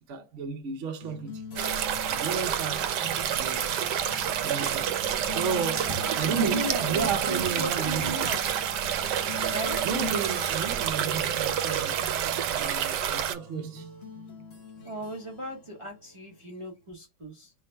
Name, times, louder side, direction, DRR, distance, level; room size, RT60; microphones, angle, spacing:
voice 1, 0.1-1.4 2.1-2.9 3.3-3.6 4.4-4.9 5.3-5.9 6.2-8.1 9.8-12.0 12.5-13.9, right 5 dB, 60° right, 0.8 m, -32 dB
sound 1, 1.0-16.9, left 2 dB, 50° left, 0.8 m, -44 dB
sound 2, 1.6-13.3, right 9 dB, 80° right, 1.2 m, -28 dB
voice 2, 6.2-8.4 9.5-9.8 14.8-17.5, right 1 dB, 35° right, 0.5 m, -36 dB
4.6 x 2.1 x 4.3 m
omnidirectional pair, 1.9 m